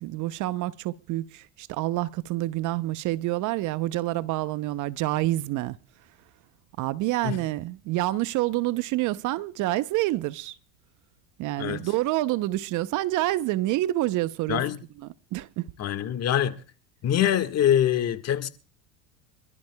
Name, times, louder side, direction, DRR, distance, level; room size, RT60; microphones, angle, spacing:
voice 1, 0.0-5.8 6.8-10.6 11.4-14.6 15.3-15.7, right 16 dB, 50° right, 0.8 m, -27 dB
voice 2, 15.8-16.6 17.0-18.5, left 10 dB, 40° left, 1.7 m, -24 dB
26.5 x 13.0 x 2.3 m
hypercardioid pair, 95°, 39 cm